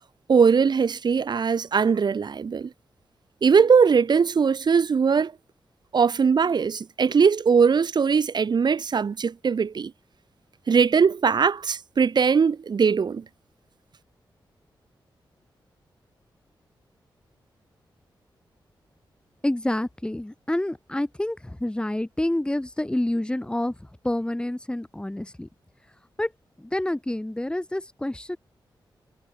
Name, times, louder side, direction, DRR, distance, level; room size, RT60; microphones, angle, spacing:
voice 1, 0.3-2.7 3.4-5.3 5.9-9.9 10.7-13.2, right 6 dB, 60° right, 1.9 m, -20 dB
voice 2, 19.4-23.7 24.0-25.5 26.2-26.3 26.6-28.4, left 1 dB, 10° left, 4.6 m, -28 dB
wide cardioid pair, 90°, 8 cm